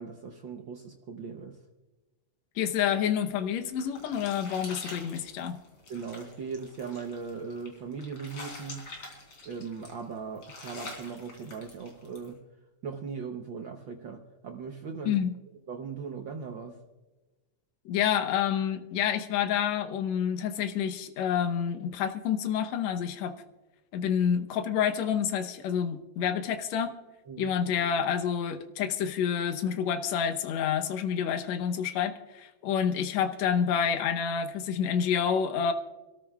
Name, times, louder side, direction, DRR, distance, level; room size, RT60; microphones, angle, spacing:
voice 1, 0.0-1.6 5.9-8.9 9.4-12.4 12.8-15.2 15.7-16.8 27.3-27.5, right 5 dB, 75° right, 3 dB, 1.1 m, -39 dB
voice 2, 2.6-5.6 15.1-15.3 17.9-23.3 23.9-26.9 27.4-35.7, left 8 dB, 70° left, 8 dB, 2.1 m, -28 dB
sound 1, 3.4-12.3, left 2 dB, 45° left, 4.1 m, -46 dB
28.0 x 13.5 x 2.4 m, 1.1 s
omnidirectional pair, 3.3 m